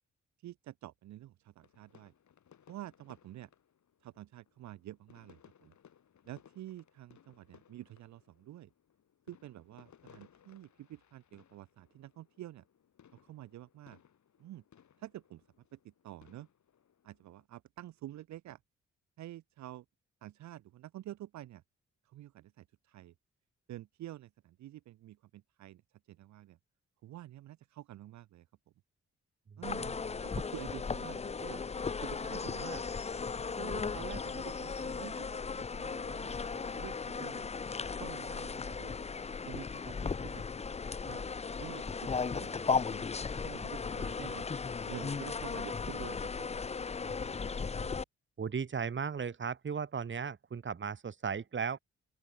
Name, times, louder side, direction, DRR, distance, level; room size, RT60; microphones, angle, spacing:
voice 1, 0.4-2.1 2.7-3.5 4.0-5.7 6.3-8.7 9.3-12.6 13.1-14.0 14.4-14.6 15.0-15.4 15.7-16.5 17.0-18.6 19.2-19.9 20.2-21.6 22.0-23.1 23.7-25.8 26.1-26.6 27.0-28.5 29.6-29.9 30.2-31.6 32.0-32.9 33.6-37.5 38.0-39.0 39.4-40.4 41.0-41.3 41.6-43.0 43.4-44.5 44.9-46.6 47.8-47.9, right 14 dB, 70° right, 0.5 m, -48 dB
sound 1, 1.6-17.5, left 9 dB, 70° left, 6.6 m, -64 dB
voice 2, 29.5-30.2 47.0-47.5 48.4-51.8, right 6 dB, 40° right, 1.2 m, -37 dB
sound 2, 29.6-48.0, left 5 dB, 20° left, 0.5 m, -36 dB
open air
supercardioid pair, 50°, 30 cm